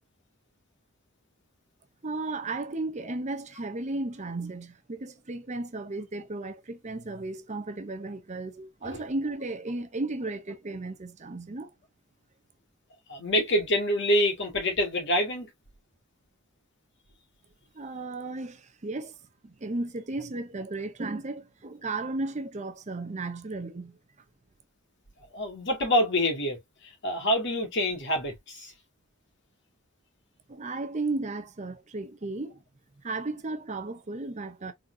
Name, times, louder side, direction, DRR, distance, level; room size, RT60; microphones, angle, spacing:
voice 1, 2.0-11.7 17.7-19.1 19.4-24.0 30.5-32.6 33.0-34.7, right 2 dB, 35° right, 0.7 m, -34 dB
voice 2, 13.1-15.5 25.3-26.6 27.0-28.7, equal, 60° left, 2.3 m, -26 dB
4.2 x 4.1 x 2.7 m
head